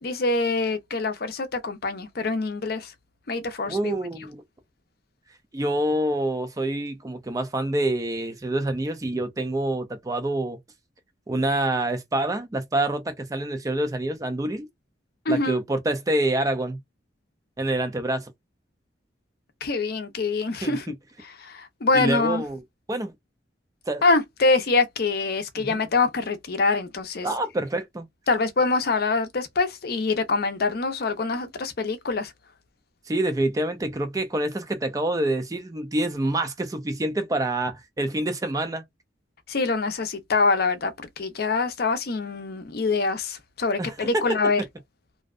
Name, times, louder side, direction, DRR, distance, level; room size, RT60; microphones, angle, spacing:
voice 1, 0.0-2.9 3.3-3.9 15.3-15.6 19.6-20.9 21.2-22.4 24.0-27.3 28.3-32.3 39.5-44.6, left 3 dB, 55° left, 0.5 m, -25 dB
voice 2, 3.6-4.4 5.5-10.6 11.3-14.7 15.3-16.8 17.6-18.3 20.6-20.9 21.9-22.6 22.9-23.1 23.9-24.0 25.6-25.8 27.2-28.1 33.1-38.8 43.8-44.2, right 1 dB, 20° right, 0.4 m, -26 dB
2.6 x 2.1 x 2.3 m
head